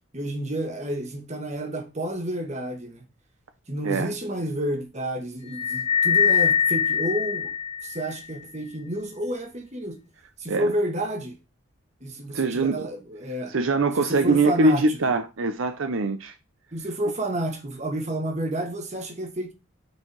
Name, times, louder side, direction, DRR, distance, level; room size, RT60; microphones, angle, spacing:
voice 1, 0.1-3.0 3.7-7.5 7.8-10.0 10.4-11.4 12.0-13.5 14.0-15.0 16.7-19.5, right 1 dB, 35° right, 1.5 m, -30 dB
sound 1, 5.5-8.2, left 7 dB, 30° left, 0.7 m, -23 dB
voice 2, 12.3-12.9 13.5-16.3, right 3 dB, 70° right, 0.7 m, -23 dB
6.3 x 4.6 x 4.6 m
head